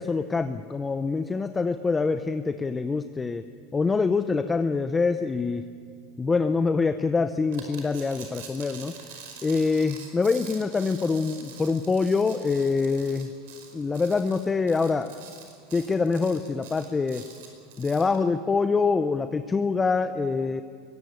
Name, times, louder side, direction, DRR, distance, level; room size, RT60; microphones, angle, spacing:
voice 1, 0.0-3.4 3.7-5.6 6.2-8.9 9.4-13.3 13.7-15.1 15.7-17.2 17.8-20.6, left 4 dB, 15° left, 9 dB, 0.7 m, -25 dB
sound 1, 7.5-18.2, right 6 dB, 85° right, 5.2 m, -45 dB
22.0 x 19.0 x 8.4 m, 2.2 s
supercardioid pair, 130°, 0 cm